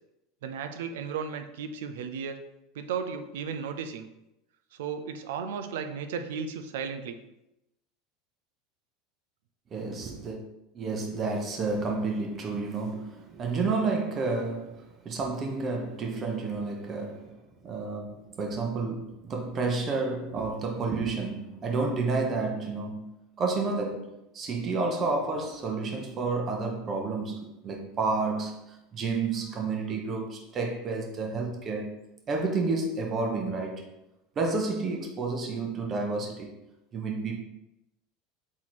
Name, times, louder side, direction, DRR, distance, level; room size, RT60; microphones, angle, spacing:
voice 1, 0.4-2.4 2.7-4.1 4.7-7.2, right 6 dB, 75° right, 0.5 m, -35 dB
voice 2, 9.7-10.4 10.7-17.4 17.6-23.1 23.4-32.0 32.3-33.9 34.4-36.5 36.9-37.4, right 3 dB, 35° right, 0.9 m, -30 dB
3.6 x 3.1 x 4.3 m
hypercardioid pair, 90°, 0 cm